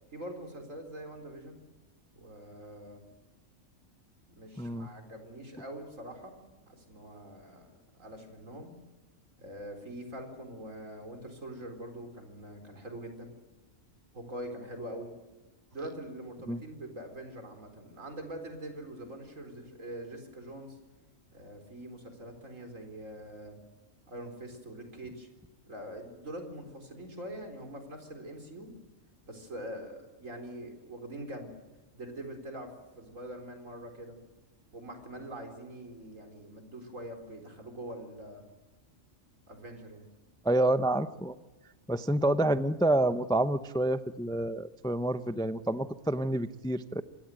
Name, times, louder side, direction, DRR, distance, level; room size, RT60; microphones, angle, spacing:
voice 1, 0.1-1.6 2.1-3.0 4.3-6.3 6.7-8.7 9.4-13.3 14.1-15.1 15.7-20.8 21.3-23.6 24.1-25.3 25.7-28.7 29.3-31.5 31.9-34.2 34.7-38.4 39.5-40.1, right 1 dB, 85° right, 5 dB, 4.4 m, -44 dB
voice 2, 4.6-4.9 16.5-16.6 40.4-41.4 41.9-47.0, right 1 dB, 5° left, 13 dB, 0.5 m, -28 dB
26.5 x 16.5 x 9.1 m, 1.2 s
omnidirectional pair, 1.3 m